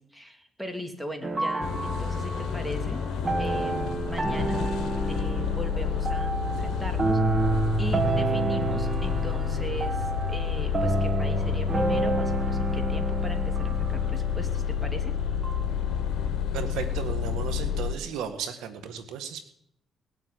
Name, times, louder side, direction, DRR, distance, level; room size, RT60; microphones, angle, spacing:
voice 1, 0.0-3.0 3.4-4.6 5.1-7.2 7.8-15.2, equal, ahead, 6 dB, 2.5 m, -39 dB
sound 1, 1.2-17.4, right 3 dB, 30° right, 1.9 m, -30 dB
sound 2, 1.6-17.9, left 8 dB, 75° left, 1.2 m, -29 dB
voice 2, 16.5-19.5, right 8 dB, 90° right, 8 dB, 1.8 m, -35 dB
19.5 x 7.6 x 9.3 m, 0.72 s
cardioid pair, 90°, 0 cm